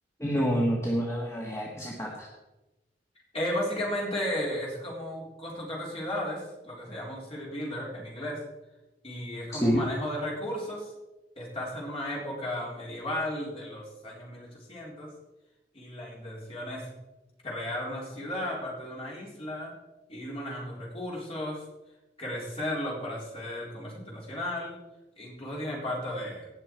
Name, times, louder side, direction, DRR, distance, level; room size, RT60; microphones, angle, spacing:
voice 1, 0.2-2.3 9.6-9.8, equal, 15° left, -2 dB, 1.5 m, -27 dB
voice 2, 3.3-8.4 9.0-10.9 11.4-15.1 15.7-16.9 17.4-19.7 20.1-21.6 22.2-24.8 25.2-26.5, left 1 dB, 35° left, -3 dB, 3.8 m, -34 dB
18.0 x 6.7 x 4.6 m, 1.0 s
head